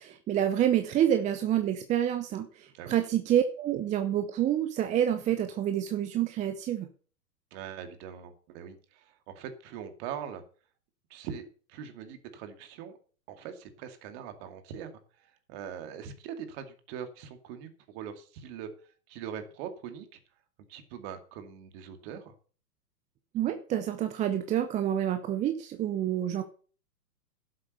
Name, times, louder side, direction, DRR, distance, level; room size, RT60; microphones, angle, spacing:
voice 1, 0.0-6.9 23.3-26.4, right 11 dB, 15° right, 7 dB, 0.7 m, -28 dB
voice 2, 7.5-10.4 11.1-12.9 13.3-14.9 15.2-20.2 20.7-22.3, right 8 dB, 40° right, 7 dB, 2.4 m, -42 dB
11.0 x 7.7 x 6.6 m, 0.41 s
hypercardioid pair, 125°, 48 cm